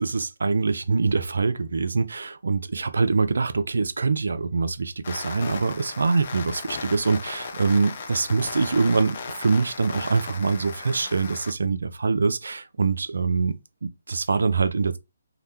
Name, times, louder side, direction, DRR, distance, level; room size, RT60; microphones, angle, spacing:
voice 1, 0.0-13.6 13.8-15.0, right 4 dB, 75° right, 0.5 m, -24 dB
sound 1, 5.0-11.5, left 5 dB, 45° left, 0.5 m, -36 dB
2.8 x 2.1 x 3.3 m
hypercardioid pair, 155°, 0 cm